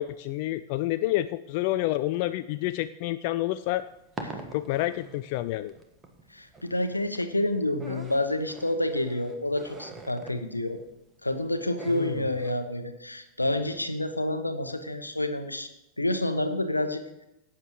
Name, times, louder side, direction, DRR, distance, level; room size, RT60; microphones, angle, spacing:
voice 1, 0.0-3.8 4.5-5.7 11.9-12.2, left 15 dB, 45° left, 12 dB, 0.4 m, -29 dB
sound 1, 3.6-12.5, right 3 dB, 15° right, 1.5 m, -44 dB
voice 2, 6.3-10.8 11.2-15.7 16.0-17.2, left 1 dB, 85° left, 8 dB, 1.0 m, -29 dB
17.5 x 8.7 x 3.1 m, 0.89 s
figure-of-eight pair, 90°, 0 cm